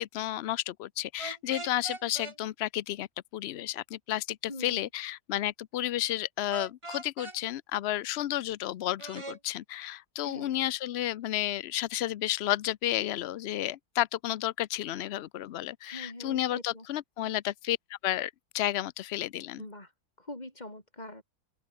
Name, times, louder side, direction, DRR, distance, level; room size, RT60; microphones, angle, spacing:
voice 1, 0.0-3.1 3.3-19.6, left 13 dB, 70° left, 0.6 m, -32 dB
sound 1, 1.2-2.4 6.5-7.4 9.0-9.4, right 2 dB, 20° right, 1.9 m, -40 dB
voice 2, 4.5-4.9 10.2-10.7 15.8-16.9 19.6-19.9 20.2-21.2, left 1 dB, 25° left, 4.8 m, -43 dB
open air
omnidirectional pair, 1.6 m